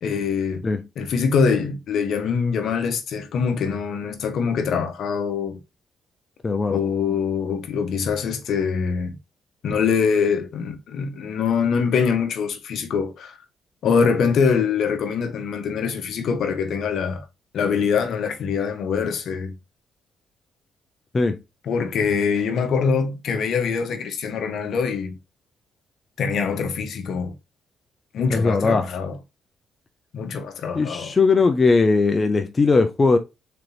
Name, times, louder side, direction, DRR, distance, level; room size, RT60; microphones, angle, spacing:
voice 1, 0.0-0.6 1.0-5.6 6.7-9.1 9.6-13.4 13.8-17.2 17.5-19.5 21.7-25.2 26.2-27.3 28.1-29.2 30.1-31.1, left 6 dB, 70° left, 0.8 m, -23 dB
voice 2, 6.4-6.8 21.1-21.4 28.3-28.9 30.7-33.2, left 3 dB, 30° left, 0.4 m, -19 dB
3.8 x 3.3 x 2.9 m
cardioid pair, 90°, 0 cm